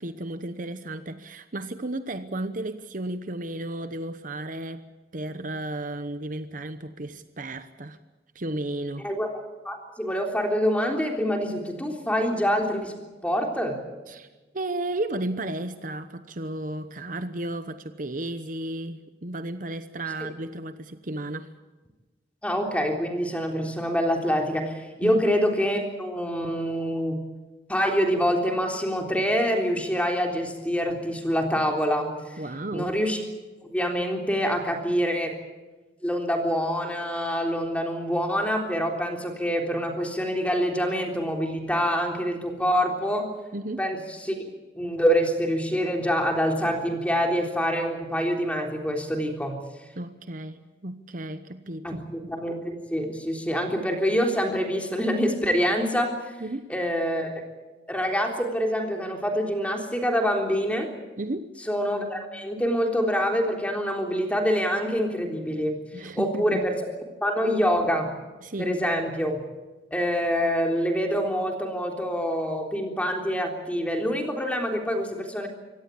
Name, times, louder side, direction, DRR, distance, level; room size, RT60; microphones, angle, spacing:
voice 1, 0.0-4.8 5.1-8.0 8.3-9.1 14.1-14.3 14.5-21.5 25.0-25.2 32.4-32.9 43.5-43.8 50.0-52.0 56.4-56.7 61.2-61.5 65.9-66.6 68.4-68.8, right 1 dB, 45° right, 10 dB, 1.0 m, -33 dB
voice 2, 9.6-12.9 13.2-13.8 22.4-27.2 27.7-32.4 32.7-33.2 33.6-35.3 36.0-43.3 43.8-44.0 44.2-44.3 44.8-49.6 51.8-52.0 52.3-56.1 56.7-57.3 57.9-60.9 61.7-66.8 67.2-68.1 68.6-69.4 69.9-75.5, equal, 10° left, 2 dB, 3.6 m, -26 dB
25.0 x 17.5 x 8.5 m, 1.2 s
head